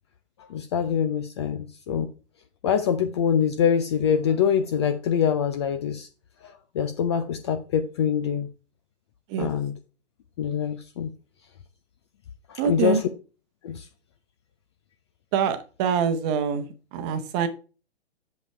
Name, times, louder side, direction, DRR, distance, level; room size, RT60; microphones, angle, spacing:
voice 1, 0.4-2.1 2.6-6.1 6.7-8.5 9.4-9.7 10.4-11.1 12.5-13.0 13.6-13.8, left 8 dB, 25° left, 0.5 m, -24 dB
voice 2, 12.6-13.0 15.3-17.5, right 7 dB, 25° right, 1.0 m, -25 dB
7.1 x 5.2 x 4.3 m
figure-of-eight pair, 130°, 34 cm